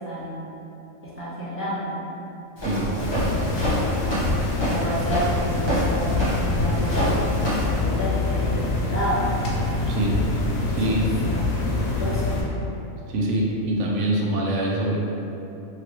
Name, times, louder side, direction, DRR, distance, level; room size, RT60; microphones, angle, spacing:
voice 1, 0.0-0.5 1.2-2.0 2.9-3.8 4.6-7.2 7.6-8.5 8.9-9.3 10.7-10.8 11.2-12.3, equal, 15° right, -12 dB, 0.5 m, -31 dB
Walk footsteps, 2.6-7.8, equal, 25° left, 0.7 m, -27 dB
sound 1, 3.0-12.4, left 2 dB, 75° left, 1.0 m, -25 dB
voice 2, 9.9-10.2 10.7-11.1 13.1-15.0, right 1 dB, 70° right, -3 dB, 0.8 m, -24 dB
2.9 x 2.7 x 3.0 m, 2.9 s
omnidirectional pair, 1.4 m